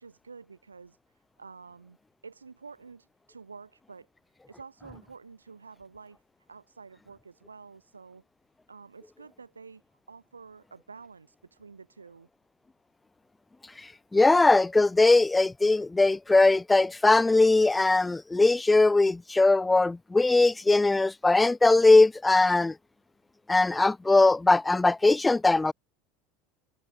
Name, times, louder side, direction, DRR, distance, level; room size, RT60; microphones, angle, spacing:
voice 1, 0.0-2.0 2.2-4.1 4.5-6.2 6.5-8.2 8.7-9.8 10.1-12.3, right 5 dB, 80° right, 3.8 m, -49 dB
voice 2, 14.1-22.7 23.5-25.7, left 2 dB, 10° left, 0.6 m, -20 dB
figure-of-eight pair, 75°, 0 cm